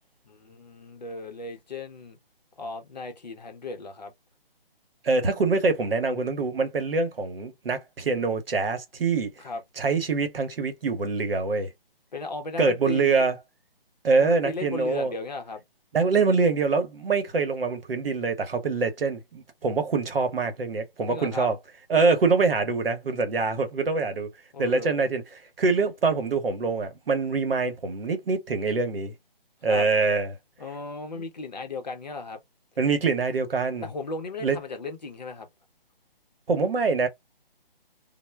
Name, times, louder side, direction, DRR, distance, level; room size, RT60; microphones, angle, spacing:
voice 1, 0.3-2.2 2.6-4.1 9.4-9.6 12.1-13.3 14.2-15.6 21.1-21.5 24.5-24.9 29.7-29.9 30.6-32.4 33.8-35.5, left 3 dB, 45° left, 0.6 m, -36 dB
voice 2, 5.0-9.3 9.8-11.7 12.6-13.4 14.0-15.1 15.9-21.6 21.9-24.3 24.6-29.1 29.6-30.3 32.8-33.9 34.4-34.6 36.5-37.1, right 4 dB, 70° right, 0.9 m, -24 dB
2.0 x 2.0 x 3.2 m
hypercardioid pair, 175°, 30 cm